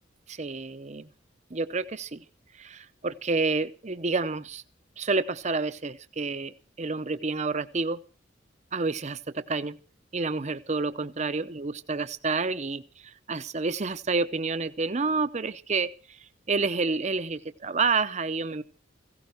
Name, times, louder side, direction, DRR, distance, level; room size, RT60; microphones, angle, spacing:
voice 1, 0.3-1.1 1.5-2.2 2.6-4.6 5.0-8.0 8.7-9.8 10.1-15.9 16.5-18.6, right 4 dB, 35° right, 12 dB, 0.7 m, -29 dB
16.5 x 16.0 x 4.5 m, 0.37 s
head